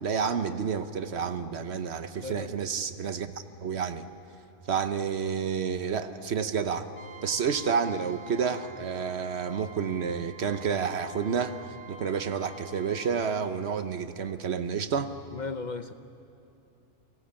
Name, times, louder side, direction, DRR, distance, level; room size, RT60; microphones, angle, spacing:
voice 1, 0.0-3.3 3.6-4.1 4.7-6.9 7.2-11.6 11.9-15.1, right 6 dB, 65° right, 10 dB, 1.2 m, -30 dB
voice 2, 2.2-2.5 15.3-15.9, left 4 dB, 45° left, 10 dB, 0.7 m, -36 dB
Trumpet, 6.9-13.3, right 3 dB, 80° left, 2.2 m, -48 dB
30.0 x 18.5 x 8.7 m, 2.8 s
omnidirectional pair, 1.2 m